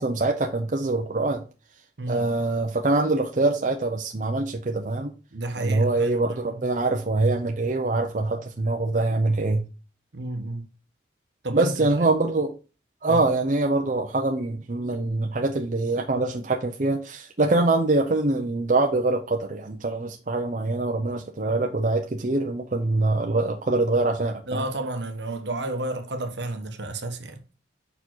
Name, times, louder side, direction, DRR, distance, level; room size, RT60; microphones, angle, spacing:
voice 1, 0.0-1.4 2.1-5.1 5.6-9.6 11.5-12.5 13.0-24.7, right 2 dB, 40° right, 0.6 m, -24 dB
voice 2, 5.3-6.5 10.1-10.6 11.4-11.9 13.1-13.2 24.5-27.4, right 2 dB, 65° right, 1.1 m, -31 dB
5.5 x 4.5 x 4.5 m
head